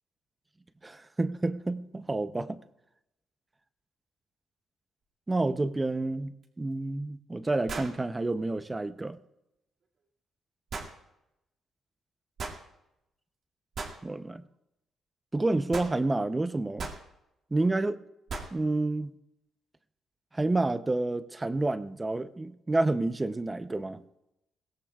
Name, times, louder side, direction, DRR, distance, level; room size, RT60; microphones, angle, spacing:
voice 1, 0.8-2.6 5.3-6.3 6.6-9.2 14.0-14.4 15.3-16.9 17.5-18.0 18.5-19.1 20.3-24.0, right 2 dB, 20° right, 12 dB, 0.7 m, -29 dB
sound 1, 6.4-6.5 7.7-8.0 10.7-10.9 12.4-12.6 13.8-14.0 15.7-16.0 16.8-17.0 18.3-18.6, right 4 dB, 55° right, 2.2 m, -37 dB
22.0 x 17.0 x 2.4 m, 0.88 s
cardioid pair, 90°, 0 cm